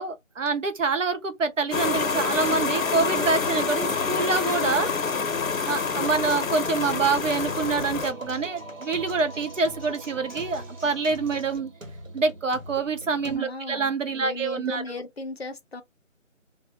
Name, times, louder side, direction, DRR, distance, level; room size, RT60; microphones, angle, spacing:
voice 1, 0.0-4.9 5.7-11.7 12.1-15.0, right 4 dB, 70° right, 0.7 m, -26 dB
sound 1, 1.7-8.1, left 5 dB, 85° left, 0.7 m, -27 dB
Singing, 1.7-13.4, right 1 dB, 90° right, 1.2 m, -41 dB
Acoustic guitar, 3.6-11.6, right 1 dB, 35° right, 0.7 m, -48 dB
voice 2, 13.4-13.9 14.2-15.8, left 3 dB, 55° left, 0.5 m, -36 dB
2.1 x 2.0 x 2.8 m
figure-of-eight pair, 180°, 39 cm